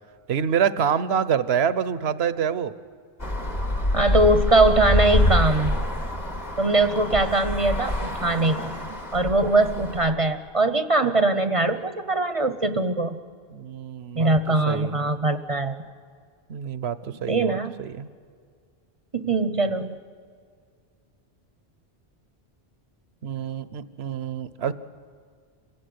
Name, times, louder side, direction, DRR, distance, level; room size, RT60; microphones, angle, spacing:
voice 1, 0.3-2.7 13.5-14.3 14.7-15.2 16.5-18.1 23.2-24.7, right 8 dB, 80° right, 15 dB, 1.1 m, -26 dB
Traffic noise roadway noise, 3.2-10.1, left 1 dB, 40° left, 2.1 m, -26 dB
voice 2, 3.9-5.8 6.6-8.7 9.1-13.2 14.1-15.8 17.3-17.8 19.1-19.9, right 2 dB, 35° right, 10 dB, 0.8 m, -22 dB
27.5 x 17.0 x 9.5 m, 2.1 s
omnidirectional pair, 1.1 m